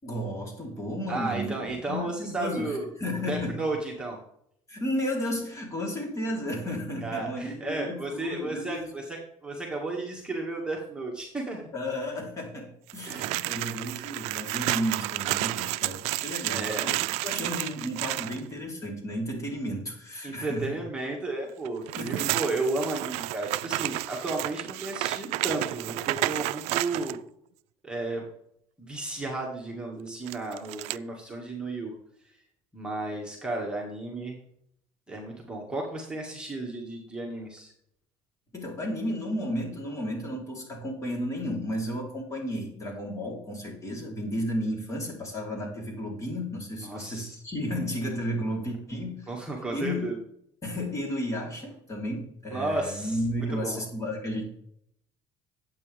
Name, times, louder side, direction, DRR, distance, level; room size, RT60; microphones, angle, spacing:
voice 1, 0.0-1.5 1.9-3.6 4.7-8.9 11.7-20.7 22.0-22.4 38.5-49.3 49.7-50.1 50.6-54.4, equal, 30° left, 0 dB, 3.9 m, -33 dB
voice 2, 1.1-2.9 3.3-4.2 7.0-11.7 13.1-13.9 16.5-17.0 20.2-27.2 27.8-28.2 28.8-31.9 32.7-34.4 35.1-37.7 46.8-47.3 49.3-50.2 52.5-53.2 53.5-53.8, right 2 dB, 10° right, -2 dB, 2.1 m, -33 dB
sound 1, 12.9-18.4 21.6-27.2 30.3-31.0, right 20 dB, 85° right, 0.4 m, -31 dB
12.0 x 8.6 x 3.6 m, 0.72 s
cardioid pair, 125°, 11 cm